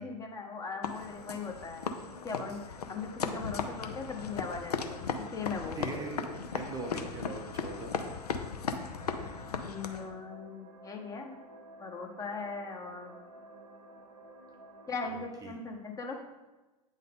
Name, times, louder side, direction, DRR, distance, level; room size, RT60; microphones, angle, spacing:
voice 1, 0.0-1.9 2.2-5.8 9.7-11.4 11.8-13.2 14.9-16.1, left 4 dB, 15° left, 2 dB, 0.8 m, -39 dB
sound 1, 0.6-15.0, right 1 dB, 75° right, 0.9 m, -54 dB
sound 2, 0.8-10.1, left 5 dB, 75° left, 0.6 m, -37 dB
voice 2, 5.8-7.9 15.1-15.6, right 2 dB, 20° right, 2 dB, 0.6 m, -41 dB
8.4 x 3.7 x 3.7 m, 1.1 s
figure-of-eight pair, 90°, 20 cm